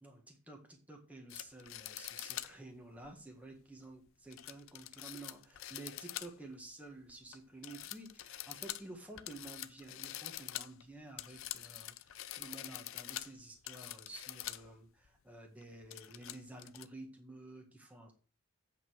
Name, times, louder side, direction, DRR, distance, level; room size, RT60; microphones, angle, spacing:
voice 1, 0.0-18.1, right 2 dB, 5° right, 1 dB, 1.6 m, -51 dB
sound 1, 1.3-2.6 3.0-3.1 4.3-6.5 6.9-7.4 7.6-14.7 15.0-15.1 15.6-16.9, left 14 dB, 65° left, 0.5 m, -45 dB
8.5 x 5.3 x 6.2 m, 0.35 s
head